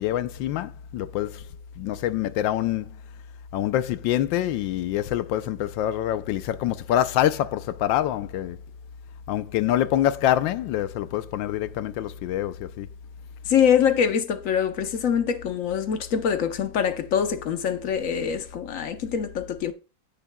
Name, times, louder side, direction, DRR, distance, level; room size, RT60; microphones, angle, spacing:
voice 1, 0.0-1.4 1.8-2.9 3.5-8.6 9.3-12.9, left 12 dB, 85° left, 1.4 m, -25 dB
voice 2, 13.5-19.7, left 8 dB, 55° left, 1.0 m, -24 dB
15.5 x 6.4 x 2.2 m
omnidirectional pair, 2.0 m